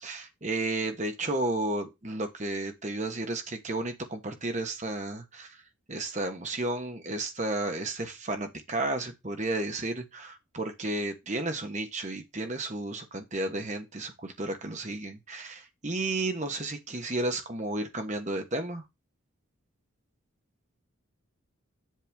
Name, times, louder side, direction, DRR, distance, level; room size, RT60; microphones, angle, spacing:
voice 1, 0.0-5.6 5.9-18.8, right 2 dB, 35° right, 1.2 m, -32 dB
7.6 x 6.9 x 3.5 m
head